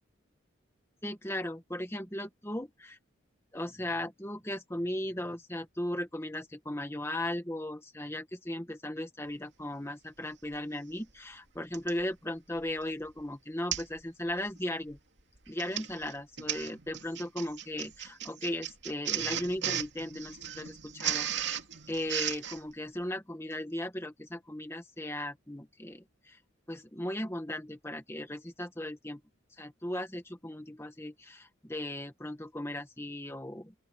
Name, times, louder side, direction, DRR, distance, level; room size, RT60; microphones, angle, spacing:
voice 1, 1.0-3.0 3.5-15.0 15.5-21.3 21.9-26.4 26.7-29.2 29.6-33.7, left 1 dB, 15° left, 1.6 m, -37 dB
Printer, 10.5-10.6 11.7-12.0 12.6-12.8 13.1-13.2 13.7-14.0 14.3-14.6 15.4-22.6, right 10 dB, 60° right, 2.6 m, -36 dB
open air
head